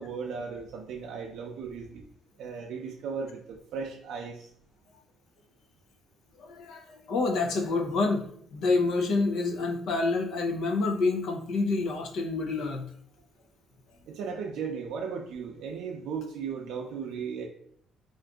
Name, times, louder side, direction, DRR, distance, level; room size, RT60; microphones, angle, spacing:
voice 1, 0.0-2.0 2.4-4.5 14.1-17.5, right 6 dB, 75° right, 0 dB, 0.5 m, -36 dB
voice 2, 6.4-8.2 8.5-12.9, left 3 dB, 65° left, 3 dB, 0.6 m, -28 dB
3.8 x 2.5 x 3.4 m, 0.65 s
cardioid pair, 155°, 0 cm